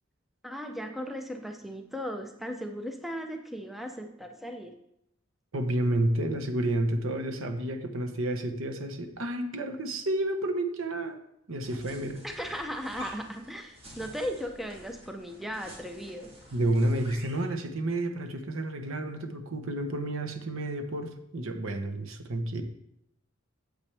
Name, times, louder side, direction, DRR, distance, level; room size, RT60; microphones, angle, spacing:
voice 1, 0.4-4.7 12.2-16.3, equal, ahead, 4 dB, 0.6 m, -37 dB
voice 2, 5.5-11.2 11.5-12.2 16.5-22.6, right 1 dB, 80° right, 6 dB, 1.0 m, -30 dB
sound 1, 11.6-17.5, right 1 dB, 30° right, 2.5 m, -48 dB
8.6 x 7.9 x 3.4 m, 0.78 s
head